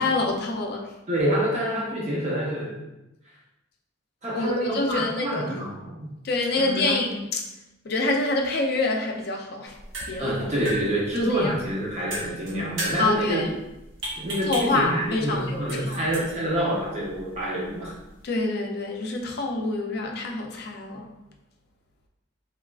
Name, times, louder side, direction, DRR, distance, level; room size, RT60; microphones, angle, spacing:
voice 1, 0.0-0.9 4.3-5.6 6.2-7.4 7.8-9.8 10.1-10.5 11.2-11.5 13.0-13.5 14.5-16.1 18.2-21.1, left 2 dB, 50° left, 1 dB, 0.4 m, -26 dB
voice 2, 1.1-2.8 4.2-6.1 6.6-7.2 10.2-13.4 14.2-18.0, right 1 dB, 30° right, -4 dB, 0.5 m, -27 dB
sound 1, 9.7-18.3, right 1 dB, 70° right, 1.0 m, -37 dB
3.5 x 3.1 x 2.3 m, 0.93 s
head